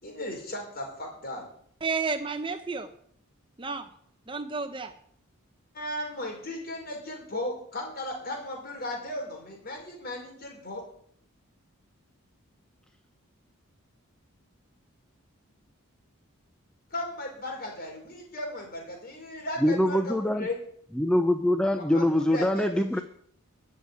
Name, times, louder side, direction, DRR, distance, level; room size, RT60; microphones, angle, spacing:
voice 1, 0.0-1.5 5.7-10.8 16.9-20.6 21.8-23.0, left 1 dB, 45° left, 2 dB, 4.7 m, -36 dB
voice 2, 1.8-2.9 3.6-3.9 4.3-4.9, right 4 dB, 25° right, 8 dB, 0.8 m, -31 dB
voice 3, 19.6-20.5 21.0-23.0, left 1 dB, 5° left, 7 dB, 0.5 m, -24 dB
13.5 x 6.6 x 9.5 m, 0.64 s
head